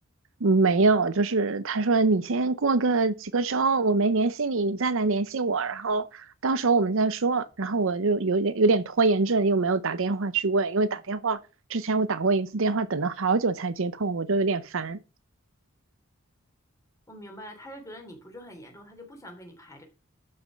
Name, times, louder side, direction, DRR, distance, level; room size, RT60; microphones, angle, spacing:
voice 1, 0.4-11.4 11.7-15.0, right 3 dB, 65° right, 0.7 m, -24 dB
voice 2, 17.1-19.8, equal, 15° left, 3.2 m, -44 dB
12.0 x 5.6 x 5.3 m
head